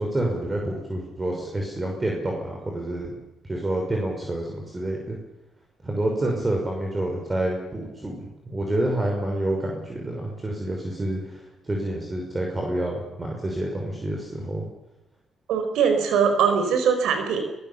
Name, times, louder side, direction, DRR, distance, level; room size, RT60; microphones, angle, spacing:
voice 1, 0.0-3.2 3.4-5.2 5.8-14.7, right 1 dB, 20° right, 0 dB, 5.9 m, -28 dB
voice 2, 15.5-17.4, right 6 dB, 85° right, 6 dB, 4.8 m, -21 dB
22.0 x 18.5 x 7.2 m, 0.95 s
cardioid pair, 90°, 0 cm